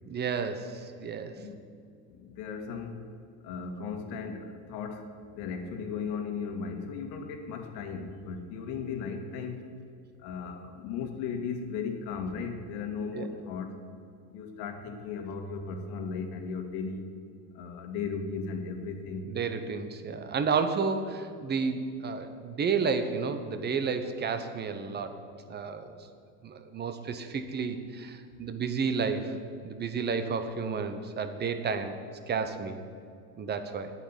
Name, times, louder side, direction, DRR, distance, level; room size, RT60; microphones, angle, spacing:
voice 1, 0.1-1.4 13.1-13.3 19.2-25.2 25.5-26.0 26.4-29.4 29.6-32.0 32.3-32.8 33.4-33.9, right 5 dB, 20° right, 9 dB, 1.0 m, -31 dB
voice 2, 2.1-3.0 3.4-9.7 10.2-13.7 14.3-17.1 17.5-19.2, left 5 dB, 55° left, 5 dB, 2.1 m, -36 dB
10.0 x 8.6 x 9.0 m, 2.4 s
supercardioid pair, 120°, 49 cm